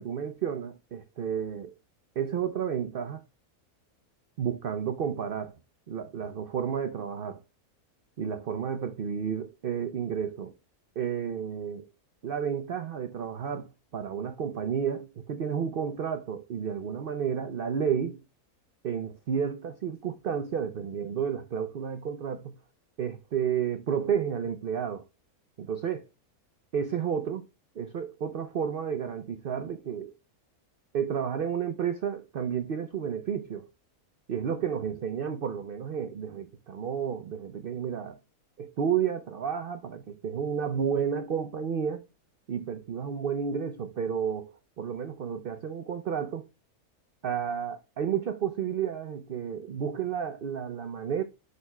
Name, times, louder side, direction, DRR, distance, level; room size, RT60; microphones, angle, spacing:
voice 1, 0.0-1.7 2.2-3.2 4.4-5.5 5.9-7.4 8.2-10.5 11.0-11.9 12.2-18.2 18.8-22.6 23.0-25.0 25.6-26.1 26.7-27.4 27.8-30.1 30.9-33.7 34.3-38.2 38.6-42.0 42.5-46.4 47.2-51.2, right 7 dB, 60° right, 0.5 m, -31 dB
11.0 x 4.2 x 2.2 m
omnidirectional pair, 1.6 m